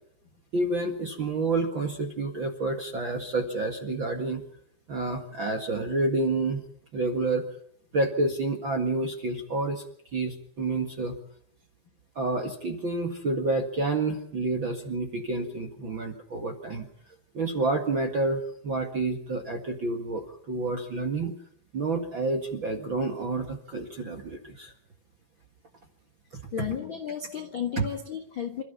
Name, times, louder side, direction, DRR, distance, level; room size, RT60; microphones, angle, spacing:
voice 1, 0.5-4.4 4.9-6.6 6.9-7.5 7.9-9.8 10.1-11.2 12.1-16.8 17.3-21.3 21.7-24.7 26.3-26.4 27.8-27.9, right 2 dB, 45° right, 4 dB, 1.7 m, -29 dB
voice 2, 26.5-28.6, left 8 dB, 55° left, 5 dB, 1.4 m, -33 dB
28.0 x 14.0 x 7.0 m, 0.67 s
omnidirectional pair, 4.9 m